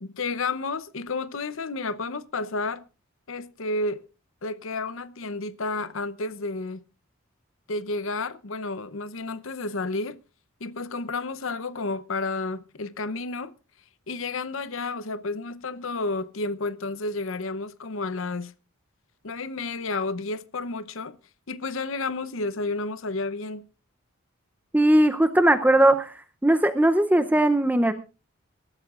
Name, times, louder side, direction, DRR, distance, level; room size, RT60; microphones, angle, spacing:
voice 1, 0.0-2.8 3.3-4.0 4.4-6.8 7.7-10.2 10.6-13.5 14.1-18.5 19.2-21.2 21.5-23.7, left 3 dB, 65° left, 0.8 m, -31 dB
voice 2, 24.7-26.1 26.4-27.9, right 1 dB, 10° right, 0.6 m, -19 dB
23.0 x 13.0 x 2.4 m
head